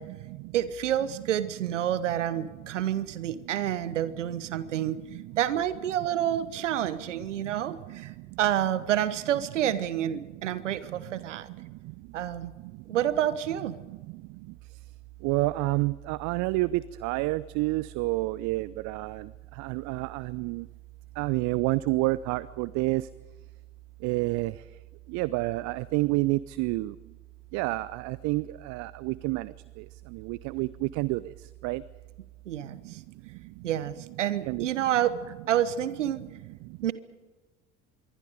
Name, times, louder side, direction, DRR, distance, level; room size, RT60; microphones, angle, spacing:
voice 1, 0.0-0.5 4.6-4.9 5.1-5.4 7.1-8.4 10.9-12.2 12.6-13.0 13.9-14.5 15.2-20.7 21.2-23.1 24.0-24.6 25.1-27.0 27.5-31.8 32.6-32.9 33.3-33.7 34.5-34.7 36.6-36.8, right 20 dB, 50° right, 19 dB, 0.7 m, -30 dB
voice 2, 0.5-5.0 5.4-8.1 8.4-11.5 12.1-12.5 12.9-13.8 32.5-33.0 33.6-35.1 35.5-36.3 36.8-36.9, right 11 dB, 75° right, 15 dB, 1.3 m, -28 dB
26.0 x 23.0 x 5.1 m, 1.3 s
figure-of-eight pair, 65°, 37 cm